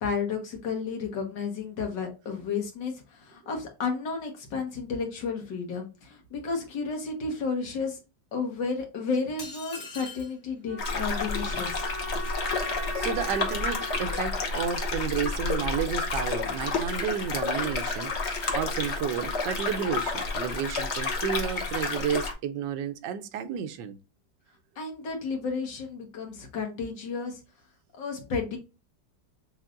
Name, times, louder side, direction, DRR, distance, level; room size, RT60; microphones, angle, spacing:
voice 1, 0.0-8.0 8.3-11.9 24.8-27.4 27.9-28.6, left 5 dB, 90° left, 2.0 m, -32 dB
sound 1, 9.4-10.4, left 3 dB, 65° left, 2.2 m, -41 dB
sound 2, 10.6-15.7, left 1 dB, 50° right, 0.4 m, -40 dB
sound 3, 10.8-22.3, left 3 dB, 45° left, 1.1 m, -30 dB
voice 2, 13.0-24.0, right 8 dB, 90° right, 1.3 m, -32 dB
6.3 x 3.2 x 2.5 m
omnidirectional pair, 1.9 m